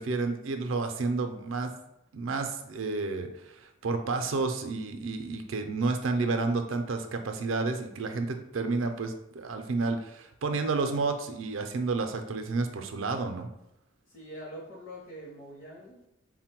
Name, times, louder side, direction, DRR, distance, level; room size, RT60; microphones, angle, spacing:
voice 1, 0.0-1.7 2.1-13.5, right 3 dB, 70° right, 6 dB, 0.5 m, -30 dB
voice 2, 14.1-16.1, equal, 40° left, -5 dB, 0.7 m, -44 dB
3.7 x 2.2 x 4.4 m, 0.84 s
head